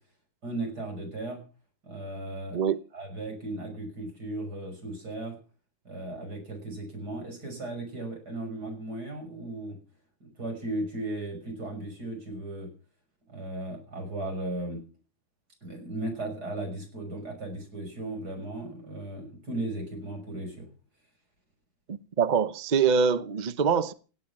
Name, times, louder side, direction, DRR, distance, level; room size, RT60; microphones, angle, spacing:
voice 1, 0.4-1.4 1.8-2.6 2.9-5.4 5.8-9.8 10.2-12.7 13.3-14.8 15.6-20.7, right 2 dB, 55° right, 6.7 m, -36 dB
voice 2, 21.9-23.9, right 6 dB, 70° right, 0.4 m, -24 dB
16.5 x 9.4 x 7.2 m
omnidirectional pair, 2.1 m